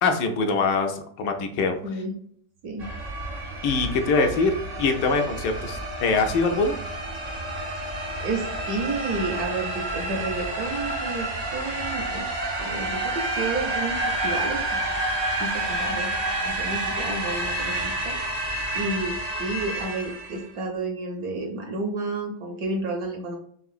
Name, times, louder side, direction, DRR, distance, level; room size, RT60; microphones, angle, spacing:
voice 1, 0.0-1.8 3.6-4.5 4.8-6.8, left 4 dB, 80° left, 5 dB, 1.3 m, -23 dB
sound 1, 2.8-20.5, right 1 dB, 80° right, 0.3 m, -29 dB
voice 2, 8.2-12.3 12.6-15.0 15.4-16.1 16.4-18.2 18.7-23.4, right 2 dB, 65° right, 3 dB, 1.0 m, -31 dB
4.8 x 3.2 x 2.4 m, 0.62 s
omnidirectional pair, 2.0 m